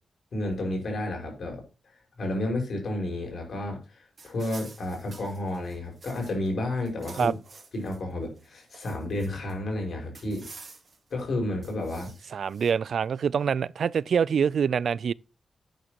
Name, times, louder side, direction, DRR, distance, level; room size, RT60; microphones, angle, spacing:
voice 1, 0.3-1.6 2.2-7.4 7.7-10.5 11.1-12.3, left 1 dB, 60° left, 5.6 m, -31 dB
sound 1, 4.2-6.5 6.8-8.0 8.4-9.5 10.1-11.1 11.6-12.7, right 4 dB, 40° right, 3.4 m, -49 dB
voice 2, 12.3-15.1, right 7 dB, 70° right, 0.4 m, -25 dB
11.0 x 9.2 x 3.0 m
wide cardioid pair, 135°, 0 cm